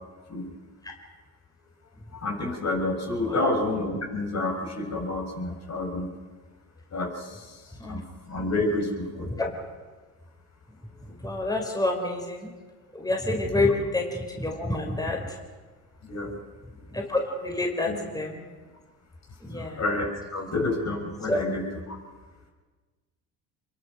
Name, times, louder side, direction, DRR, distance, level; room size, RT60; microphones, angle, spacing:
voice 1, 2.1-6.1 6.9-7.6 7.9-9.5 16.0-16.4 17.9-18.0 19.6-22.0, left 2 dB, 40° left, 2 dB, 7.3 m, -29 dB
voice 2, 11.2-12.5 12.9-15.2 16.9-18.4 19.4-19.8 21.3-21.4, left 2 dB, 10° left, 1 dB, 5.0 m, -28 dB
26.5 x 23.0 x 6.5 m, 1.4 s
supercardioid pair, 75°, 41 cm